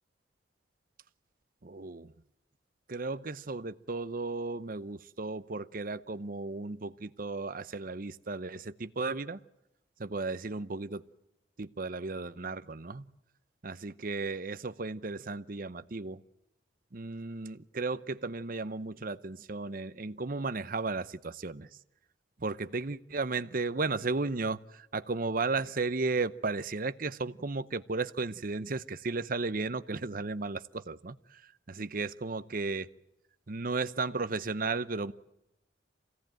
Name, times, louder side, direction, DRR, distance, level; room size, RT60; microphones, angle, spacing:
voice 1, 1.6-2.1 2.9-9.4 10.0-11.0 11.6-13.1 13.6-16.2 16.9-21.7 22.4-31.4 31.7-32.9 33.5-35.1, right 3 dB, 50° right, 0.8 m, -34 dB
25.5 x 17.0 x 9.1 m
head